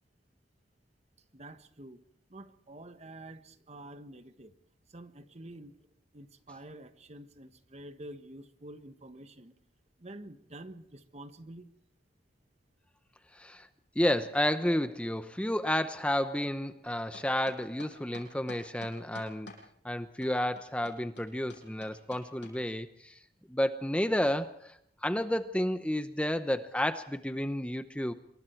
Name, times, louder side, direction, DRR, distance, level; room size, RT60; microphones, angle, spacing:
voice 1, 1.3-2.0 2.3-4.5 4.9-5.7 6.1-9.5 10.0-11.7, right 1 dB, 35° right, 9 dB, 1.4 m, -48 dB
voice 2, 13.3-13.7 14.0-19.5 19.8-23.2 23.5-28.1, left 1 dB, 5° left, 10 dB, 0.8 m, -31 dB
sound 1, 16.8-19.6 20.2-22.5, left 2 dB, 75° left, 7.5 m, -49 dB
26.5 x 23.0 x 4.6 m, 0.70 s
head